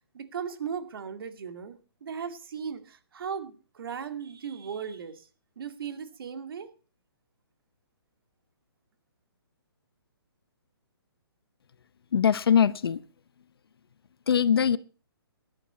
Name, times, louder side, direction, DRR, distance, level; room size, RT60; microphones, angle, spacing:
voice 1, 0.1-5.3 5.6-6.7, right 7 dB, 60° right, 2.3 m, -37 dB
voice 2, 12.1-13.0 14.3-14.8, left 8 dB, 65° left, 0.9 m, -22 dB
16.5 x 11.5 x 4.2 m
hypercardioid pair, 140°, 13 cm